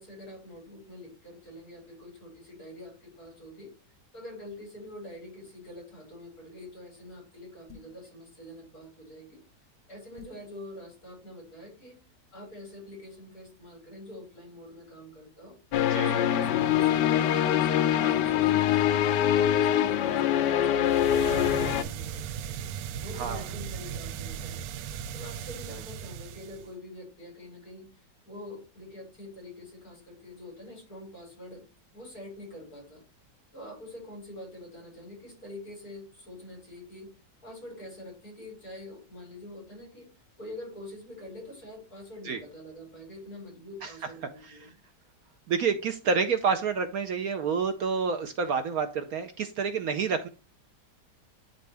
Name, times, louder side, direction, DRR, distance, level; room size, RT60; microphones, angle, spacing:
voice 1, 0.0-3.7 4.1-9.4 9.9-12.0 12.3-15.6 15.9-22.6 23.0-24.6 25.1-31.6 31.9-33.0 33.5-37.1 37.4-40.1 40.4-44.8, left 1 dB, 55° left, -1 dB, 5.1 m, -45 dB
sound 1, 7.7-8.1 10.2-10.5, left 5 dB, 5° left, 2.0 m, -48 dB
sound 2, 15.7-21.8, left 10 dB, 80° left, 1.2 m, -24 dB
voice 2, 15.9-16.2 23.2-23.4 42.2-42.4 43.8-43.9 44.4-44.5 45.5-50.3, right 5 dB, 65° right, 7 dB, 1.1 m, -28 dB
sound 3, 20.8-26.7, right 8 dB, 85° right, 1.2 m, -37 dB
10.0 x 4.0 x 3.4 m, 0.34 s
omnidirectional pair, 1.9 m